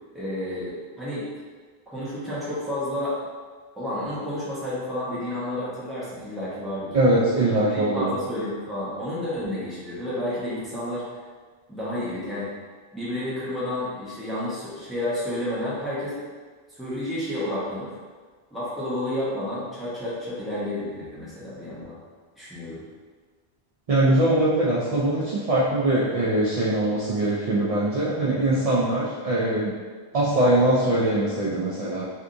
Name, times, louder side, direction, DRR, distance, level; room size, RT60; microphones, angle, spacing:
voice 1, 0.1-1.3 1.9-3.2 3.8-7.0 7.5-11.0 11.7-12.5 12.9-16.2 16.8-17.9 18.5-22.0 22.4-22.8, left 1 dB, ahead, -10 dB, 0.9 m, -30 dB
voice 2, 6.9-8.1 23.9-29.7 30.1-32.0, right 1 dB, 60° right, -7 dB, 0.3 m, -22 dB
3.4 x 2.7 x 2.5 m, 1.5 s
omnidirectional pair, 1.1 m